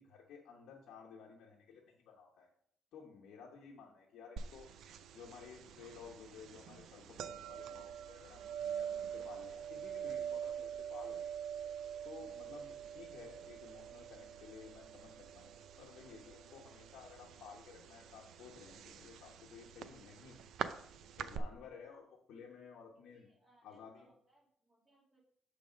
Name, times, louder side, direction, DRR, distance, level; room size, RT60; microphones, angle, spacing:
voice 1, 0.0-2.5 2.9-4.7 5.1-11.4 12.0-20.4 21.2-23.3 23.6-24.1, left 6 dB, 80° left, -1 dB, 0.9 m, -55 dB
sound 1, 4.4-21.4, right 8 dB, 75° right, 0.4 m, -45 dB
voice 2, 23.1-25.2, right 1 dB, 20° right, -2 dB, 2.2 m, -71 dB
7.0 x 3.4 x 5.0 m, 0.70 s
cardioid pair, 90°, 0 cm